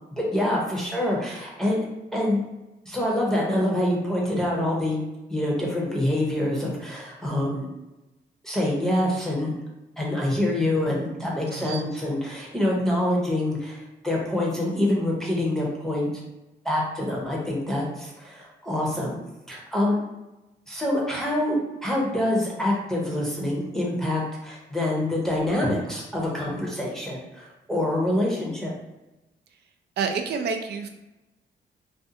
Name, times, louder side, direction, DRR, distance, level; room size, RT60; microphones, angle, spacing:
voice 1, 0.2-1.8 2.1-2.4 2.8-5.0 5.3-7.7 8.4-9.6 10.0-16.1 16.6-19.2 19.5-20.0 20.7-28.7, left 1 dB, ahead, -4 dB, 0.7 m, -26 dB
voice 2, 11.5-11.8 30.0-30.9, right 5 dB, 65° right, 5 dB, 0.4 m, -28 dB
2.5 x 2.3 x 2.7 m, 1.0 s
cardioid pair, 80°, 18 cm